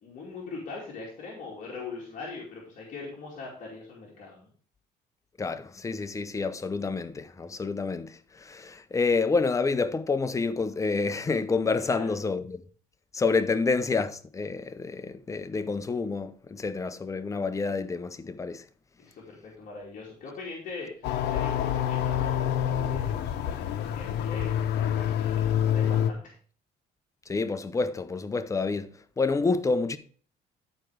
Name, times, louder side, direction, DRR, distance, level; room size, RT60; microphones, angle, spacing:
voice 1, 0.0-4.5 11.8-12.1 19.0-26.2, left 4 dB, 50° left, 2.6 m, -41 dB
voice 2, 5.4-8.2 8.5-12.6 13.1-18.6 27.3-30.0, left 4 dB, 20° left, 0.7 m, -28 dB
sound 1, 21.0-26.1, left 10 dB, 80° left, 0.8 m, -27 dB
11.0 x 4.5 x 4.9 m
cardioid pair, 110°, 17 cm